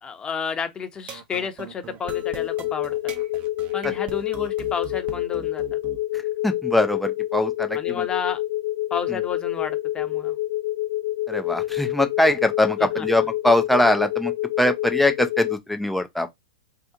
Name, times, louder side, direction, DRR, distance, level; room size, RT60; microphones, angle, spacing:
voice 1, 0.0-3.1 3.7-5.8 7.7-8.4 8.9-10.3 12.8-13.1, left 6 dB, 20° left, 0.8 m, -31 dB
sound 1, 1.0-6.0, right 7 dB, 35° right, 0.7 m, -40 dB
sound 2, 2.0-15.6, left 15 dB, 70° left, 0.8 m, -27 dB
voice 2, 6.1-8.1 11.3-14.3 14.6-16.3, left 1 dB, ahead, 0.5 m, -22 dB
2.8 x 2.4 x 3.6 m
hypercardioid pair, 115°, 4 cm